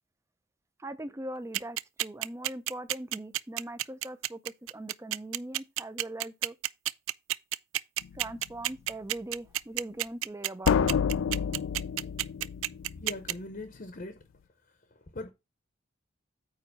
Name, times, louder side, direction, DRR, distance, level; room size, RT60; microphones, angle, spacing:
voice 1, 0.8-6.6 8.1-10.9, right 1 dB, 15° right, 0.5 m, -41 dB
sound 1, 1.5-13.3, right 15 dB, 90° right, 0.3 m, -30 dB
sound 2, 8.0-8.3 10.7-13.3, left 7 dB, 85° left, 0.4 m, -29 dB
voice 2, 13.0-14.1 15.1-15.3, left 2 dB, 45° left, 0.8 m, -40 dB
8.8 x 3.1 x 5.5 m
head